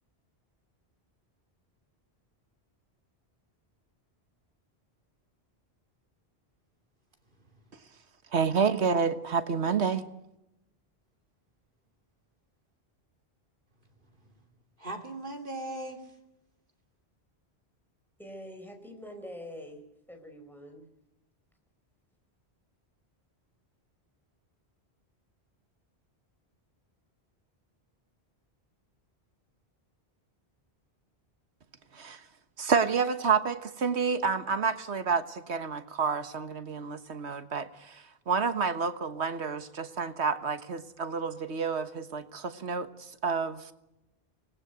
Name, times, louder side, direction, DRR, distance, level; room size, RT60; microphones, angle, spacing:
voice 1, 7.3-7.7 14.0-14.4 14.8-16.2, right 1 dB, 50° right, 3 dB, 3.2 m, -40 dB
voice 2, 8.3-10.1 31.9-32.2 32.6-43.7, right 5 dB, 85° right, 11 dB, 1.6 m, -29 dB
voice 3, 18.2-19.8 20.1-20.9, left 1 dB, ahead, 4 dB, 4.7 m, -44 dB
24.5 x 20.0 x 8.0 m, 0.91 s
omnidirectional pair, 1.1 m